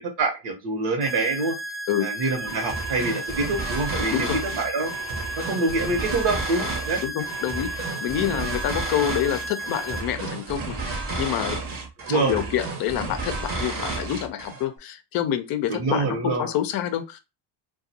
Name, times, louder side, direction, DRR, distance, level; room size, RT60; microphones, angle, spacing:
voice 1, 0.2-1.6 2.0-4.9 5.4-7.0 8.3-8.4 12.1-12.4 15.7-16.5, right 3 dB, 55° right, 3 dB, 1.0 m, -26 dB
sound 1, 1.0-10.0, right 1 dB, ahead, 0.3 m, -34 dB
sound 2, 2.5-14.7, right 3 dB, 30° right, 0.8 m, -32 dB
voice 2, 7.0-11.7 12.1-17.2, left 11 dB, 50° left, 10 dB, 0.6 m, -27 dB
2.4 x 2.3 x 2.7 m, 0.26 s
supercardioid pair, 105°, 45 cm